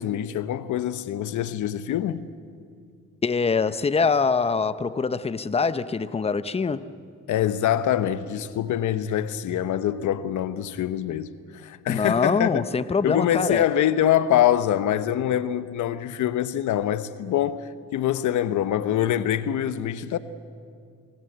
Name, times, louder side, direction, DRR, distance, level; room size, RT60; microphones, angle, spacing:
voice 1, 0.0-2.3 7.3-11.3 11.6-12.6 13.0-20.2, left 11 dB, 75° left, 1.0 m, -24 dB
voice 2, 3.2-6.9 11.9-13.6, left 5 dB, 20° left, 0.8 m, -24 dB
25.5 x 17.5 x 8.0 m
cardioid pair, 90°, 30 cm